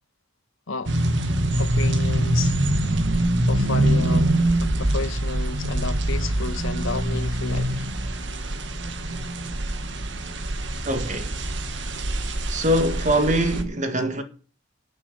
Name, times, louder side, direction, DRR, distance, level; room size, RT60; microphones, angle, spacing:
sound 1, 0.9-13.6, right 1 dB, 60° right, 1.5 m, -24 dB
voice 1, 1.6-2.6 3.5-4.3 4.6-7.9, left 4 dB, 75° left, 1.0 m, -32 dB
voice 2, 10.9-11.3 12.5-14.2, equal, 35° right, 1.8 m, -23 dB
11.0 x 7.0 x 8.7 m
head